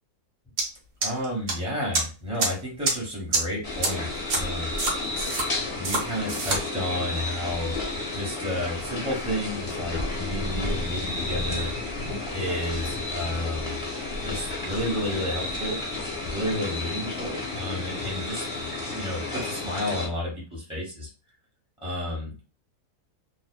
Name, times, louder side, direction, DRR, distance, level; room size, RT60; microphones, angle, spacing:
sound 1, 0.6-0.7 1.0-1.5 1.9-2.0 2.4-2.5 2.8-2.9 3.3-3.4 3.8-3.9 4.3-4.4 4.8-5.4 5.8-6.0 6.3-6.6, right 3 dB, 60° right, 1.1 m, -24 dB
voice 1, 1.0-4.7 5.7-11.7 12.3-13.8 14.2-15.8 16.3-18.5 18.9-21.1 21.8-22.5, left 1 dB, 5° right, -5 dB, 0.9 m, -31 dB
sound 2, 3.6-20.1, left 2 dB, 30° left, 0.6 m, -32 dB
2.6 x 2.2 x 2.2 m, 0.33 s
omnidirectional pair, 1.6 m